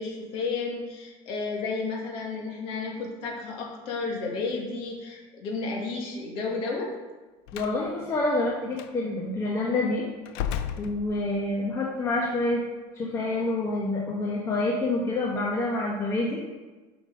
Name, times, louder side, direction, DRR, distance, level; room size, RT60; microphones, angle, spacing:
voice 1, 0.0-6.9, left 4 dB, 50° left, -1 dB, 2.1 m, -32 dB
Slam, 7.5-7.8 8.7-8.9 10.3-11.5, left 9 dB, 90° left, 0.6 m, -33 dB
voice 2, 7.5-10.0 10.8-12.6 13.0-16.4, left 2 dB, 25° left, -3 dB, 1.1 m, -27 dB
7.4 x 6.0 x 5.3 m, 1.2 s
cardioid pair, 175°, 12 cm